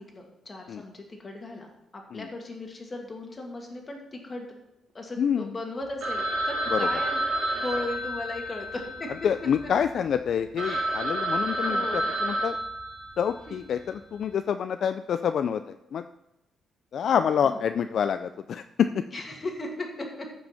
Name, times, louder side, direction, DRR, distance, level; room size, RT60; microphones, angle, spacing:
voice 1, 0.0-4.5 4.9-7.2 7.5-9.1 10.6-11.0 11.6-12.1 13.5-13.6 17.4-17.6 19.1-20.3, left 2 dB, 25° left, 2 dB, 2.1 m, -37 dB
voice 2, 5.2-5.5 6.7-6.9 9.2-11.8 12.2-12.6 13.2-16.0 16.9-19.0, left 8 dB, 60° left, 10 dB, 0.3 m, -27 dB
Telephone, 6.0-9.8 10.3-10.4 10.6-13.4, right 1 dB, 80° right, 2.8 m, -30 dB
14.5 x 5.3 x 5.7 m, 0.90 s
cardioid pair, 125°, 0 cm